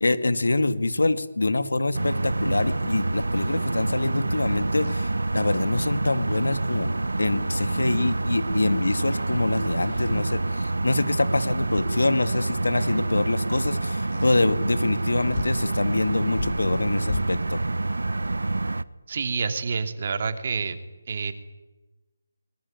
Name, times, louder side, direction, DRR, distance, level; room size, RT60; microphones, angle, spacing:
voice 1, 0.0-17.6, left 2 dB, 80° left, 11 dB, 2.1 m, -25 dB
sound 1, 1.9-18.8, right 2 dB, 85° right, 1.1 m, -27 dB
sound 2, 4.8-5.0 7.7-8.4 8.8-9.1 9.8-10.2 11.3-11.4 12.4-12.7 14.1-14.3 15.0-15.1 15.3-15.7 16.3-17.6, left 4 dB, 60° left, 1.9 m, -36 dB
voice 2, 19.1-20.8 21.1-21.3, right 5 dB, 45° right, 8 dB, 2.8 m, -28 dB
23.5 x 21.0 x 9.6 m, 1.1 s
figure-of-eight pair, 160°, 0 cm